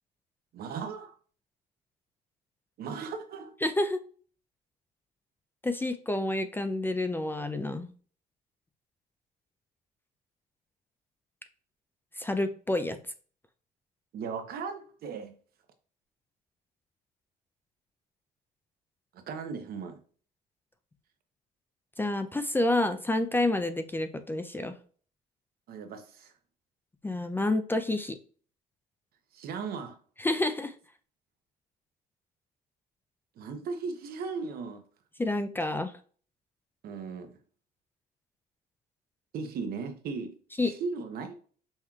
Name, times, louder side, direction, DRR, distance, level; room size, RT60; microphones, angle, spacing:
voice 1, 0.5-1.2 2.8-3.5 14.1-15.3 19.3-20.0 25.7-26.3 29.3-30.0 33.4-34.8 36.8-37.4 39.3-40.3 40.6-41.3, right 5 dB, 65° right, 0.8 m, -37 dB
voice 2, 3.6-4.0 5.6-7.9 12.2-13.0 22.0-24.7 27.0-28.2 30.2-30.7 35.2-35.9 40.6-40.7, left 2 dB, 10° left, 0.4 m, -29 dB
5.5 x 3.0 x 2.3 m
cardioid pair, 110°, 17 cm